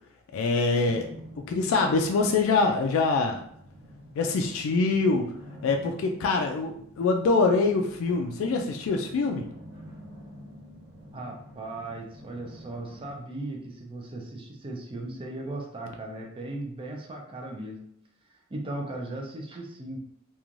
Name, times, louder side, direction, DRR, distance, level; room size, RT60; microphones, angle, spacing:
voice 1, 0.3-1.1 1.4-3.4 4.2-5.3 5.6-9.5, left 3 dB, 70° left, 3 dB, 0.3 m, -24 dB
sound 1, 0.8-13.2, equal, 60° right, 1.2 m, -48 dB
voice 2, 11.1-17.8 18.5-20.0, right 2 dB, 25° right, 1 dB, 0.4 m, -37 dB
3.0 x 2.3 x 2.5 m, 0.67 s
head